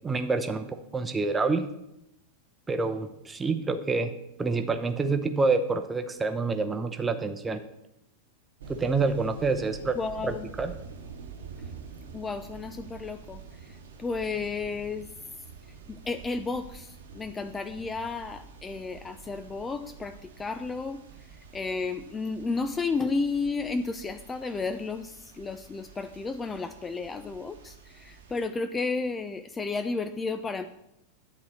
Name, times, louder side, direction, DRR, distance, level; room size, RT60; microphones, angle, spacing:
voice 1, 0.0-1.7 2.7-4.1 4.4-7.6 8.7-10.0 10.2-10.7, right 4 dB, 15° right, 8 dB, 0.7 m, -27 dB
sound 1, 8.6-28.5, right 6 dB, 65° right, 1.2 m, -47 dB
voice 2, 10.0-10.5 12.1-13.4 13.7-15.1 15.9-21.0 21.5-30.7, left 4 dB, 15° left, 10 dB, 0.4 m, -32 dB
10.5 x 4.2 x 6.2 m, 0.84 s
figure-of-eight pair, 90°, 0 cm